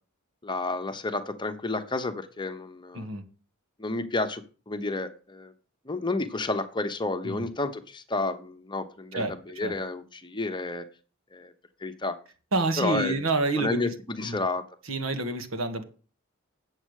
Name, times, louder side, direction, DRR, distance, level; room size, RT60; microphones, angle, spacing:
voice 1, 0.4-3.1 3.8-5.5 5.9-10.8 11.3-11.5 11.8-12.2 12.8-13.1 13.6-14.6, left 2 dB, 25° left, 9 dB, 1.0 m, -31 dB
voice 2, 9.1-9.7 12.5-13.9 14.2-14.4 14.8-15.8, right 2 dB, 85° right, 7 dB, 1.8 m, -28 dB
8.8 x 7.3 x 6.5 m, 0.37 s
head